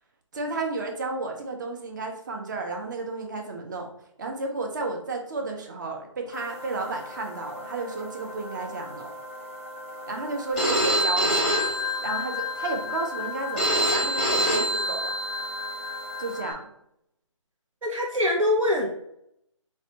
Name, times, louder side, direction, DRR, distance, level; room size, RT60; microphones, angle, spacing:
voice 1, 0.3-3.9 4.2-9.1 10.1-11.6 12.0-15.1 16.2-16.7, right 3 dB, 35° right, 3 dB, 0.6 m, -32 dB
sound 1, 6.3-16.4, right 1 dB, 25° left, 0.4 m, -39 dB
Telephone, 10.6-16.5, equal, 5° right, 0.8 m, -26 dB
voice 2, 17.8-18.9, left 1 dB, 85° right, 0 dB, 0.7 m, -24 dB
4.0 x 2.2 x 2.7 m, 0.74 s
figure-of-eight pair, 155°, 17 cm